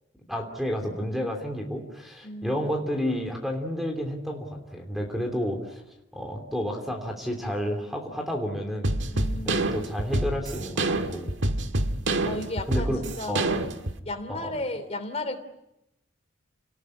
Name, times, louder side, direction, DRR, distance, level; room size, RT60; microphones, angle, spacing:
voice 1, 0.3-5.8 6.1-8.9 9.4-11.3 12.7-13.0 13.3-13.5 14.3-14.6, equal, ahead, 3 dB, 3.1 m, -31 dB
voice 2, 2.2-2.7 5.0-5.2 9.1-9.8 12.2-13.7 14.0-15.4, left 2 dB, 30° left, 6 dB, 3.1 m, -35 dB
sound 1, 8.8-14.0, right 2 dB, 65° right, 1.7 m, -27 dB
29.0 x 20.0 x 9.8 m, 0.89 s
head